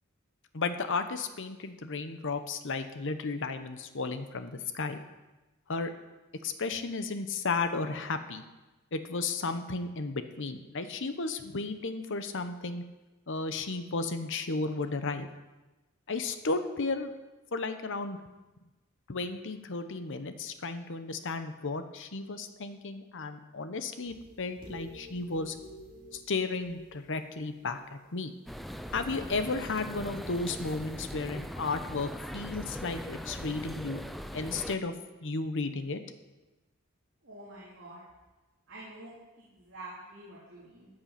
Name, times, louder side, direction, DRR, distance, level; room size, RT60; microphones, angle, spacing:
voice 1, 0.5-5.0 5.7-5.9 6.4-8.4 8.9-12.8 13.3-15.3 16.1-17.1 17.5-18.2 19.1-25.5 26.1-28.3 28.9-34.0 34.3-34.9 35.2-36.0, left 3 dB, 60° left, 9 dB, 0.9 m, -34 dB
sound 1, 24.0-28.1 28.6-28.9, equal, 25° right, 3.3 m, -51 dB
sound 2, 28.5-34.8, equal, ahead, 0.4 m, -40 dB
voice 2, 37.2-38.0 38.7-39.1 39.4-40.9, right 2 dB, 55° right, -7 dB, 3.0 m, -47 dB
13.5 x 7.8 x 5.8 m, 1.1 s
head